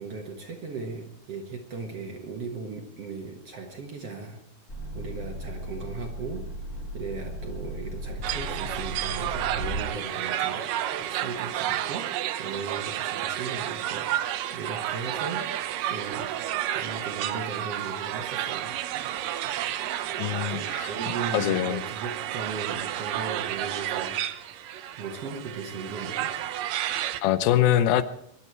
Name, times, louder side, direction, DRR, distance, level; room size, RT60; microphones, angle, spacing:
voice 1, 0.0-4.4 4.9-6.4 6.9-10.6 11.0-12.1 12.4-15.4 15.9-16.3 16.7-18.8 20.5-24.2 25.0-26.3, right 4 dB, 55° right, 2 dB, 2.0 m, -37 dB
sound 1, 4.7-9.8, equal, 25° left, 3.0 m, -36 dB
sound 2, 8.2-27.2, right 12 dB, 75° right, 2.2 m, -31 dB
voice 2, 20.2-20.9 21.3-21.8 27.2-28.0, left 11 dB, 80° left, 13 dB, 2.6 m, -23 dB
22.5 x 11.5 x 4.6 m, 0.72 s
omnidirectional pair, 4.3 m